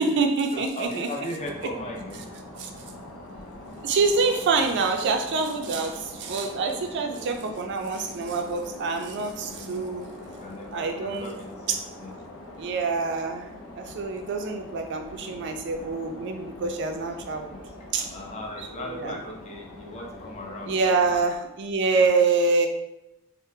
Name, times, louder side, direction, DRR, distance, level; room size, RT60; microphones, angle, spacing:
voice 1, 0.0-1.1 2.5-2.7 3.8-10.1 10.7-11.4 12.6-17.6 17.9-18.1 18.6-19.2 20.7-22.7, right 4 dB, 55° right, 4 dB, 0.3 m, -26 dB
voice 2, 0.5-2.2 6.9-7.0 9.5-10.1 10.4-12.1 16.5-17.0 17.5-17.6 18.1-21.2 21.9-22.1, left 1 dB, 30° left, 0 dB, 0.4 m, -38 dB
sound 1, 1.4-21.2, left 1 dB, 80° left, 0.5 m, -43 dB
3.6 x 2.0 x 2.6 m, 0.89 s
head